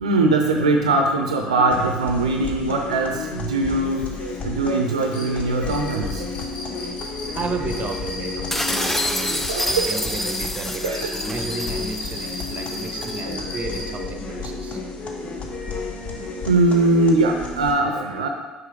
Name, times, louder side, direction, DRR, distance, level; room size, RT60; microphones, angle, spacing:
voice 1, 0.0-6.3 9.5-10.1 10.8-11.1 13.3-13.8 16.0-18.3, right 2 dB, 85° right, 3 dB, 0.6 m, -21 dB
sound 1, 1.7-17.7, left 4 dB, 45° left, 0.9 m, -32 dB
sound 2, 5.1-14.0, left 2 dB, 65° left, 1.5 m, -35 dB
voice 2, 7.3-9.5 9.9-14.8, right 4 dB, 40° right, 6 dB, 0.8 m, -33 dB
sound 3, 8.5-13.2, left 1 dB, 10° left, 0.5 m, -28 dB
5.7 x 5.3 x 3.7 m, 1.2 s
hypercardioid pair, 60°, 3 cm